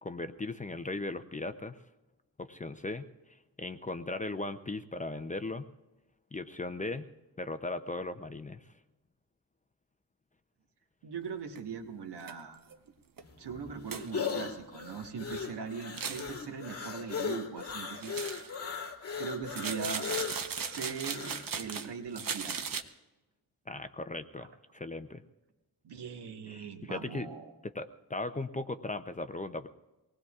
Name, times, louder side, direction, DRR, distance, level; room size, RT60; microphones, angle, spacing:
voice 1, 0.0-1.8 2.4-3.0 3.3-5.7 6.3-7.1 7.4-8.6 23.7-25.2 26.5-27.3 27.6-29.7, left 2 dB, 20° left, 9 dB, 0.5 m, -38 dB
voice 2, 11.0-12.6 13.4-18.2 19.2-20.1 20.4-22.8 24.4-24.5 25.8-27.5, right 6 dB, 85° right, 4 dB, 1.4 m, -40 dB
sound 1, 11.6-11.7 12.2-12.3 12.7-12.8 13.2-13.3 13.9-14.3 15.8-16.3 18.0-18.6 19.5-21.9 22.1-22.8, right 6 dB, 55° right, 0.9 m, -37 dB
sound 2, 13.2-21.5, left 6 dB, 35° left, 2.2 m, -38 dB
24.5 x 19.0 x 2.4 m, 1.1 s
wide cardioid pair, 135°, 40 cm